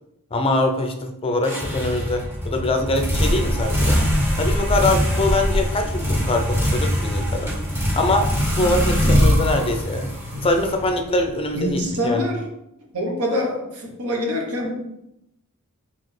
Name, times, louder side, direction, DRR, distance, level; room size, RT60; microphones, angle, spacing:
voice 1, 0.3-4.0 4.4-7.5 7.9-8.3 8.6-10.1 10.4-12.2, left 2 dB, 25° left, 5 dB, 0.5 m, -23 dB
sound 1, 1.4-11.2, equal, 10° right, 1.1 m, -22 dB
voice 2, 11.5-12.4 12.9-14.8, left 1 dB, 80° right, 1 dB, 0.9 m, -25 dB
4.6 x 3.4 x 3.1 m, 0.85 s
head